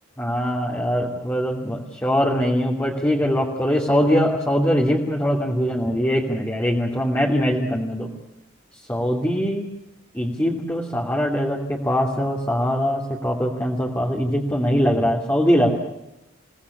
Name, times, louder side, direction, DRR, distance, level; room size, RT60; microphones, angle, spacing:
voice 1, 0.2-8.1 8.9-9.7 10.1-15.7, equal, 10° left, -1 dB, 2.7 m, -22 dB
28.5 x 18.5 x 8.5 m, 0.88 s
head